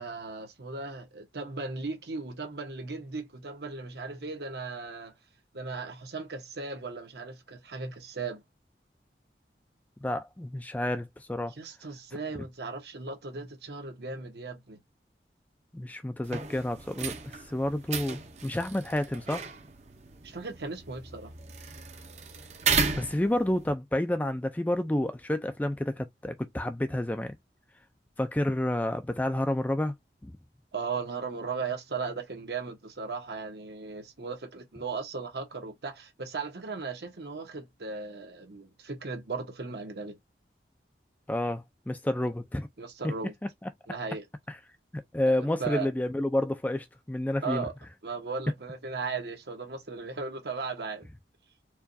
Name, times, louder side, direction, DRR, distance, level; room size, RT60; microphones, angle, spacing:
voice 1, 0.0-5.1 5.5-8.4 11.6-14.8 20.2-21.3 30.7-40.2 42.8-43.3 43.9-44.3 45.3-45.9 47.4-47.7 48.0-51.1, right 4 dB, 70° right, 1.0 m, -37 dB
voice 2, 10.0-11.5 15.7-19.4 22.9-27.3 28.2-29.9 30.2-30.3 41.3-42.7 43.0-43.1 43.6-43.7 45.1-47.7, left 1 dB, 10° left, 0.3 m, -29 dB
sound 1, 16.2-23.7, right 5 dB, 40° right, 0.6 m, -34 dB
4.5 x 2.3 x 2.6 m
head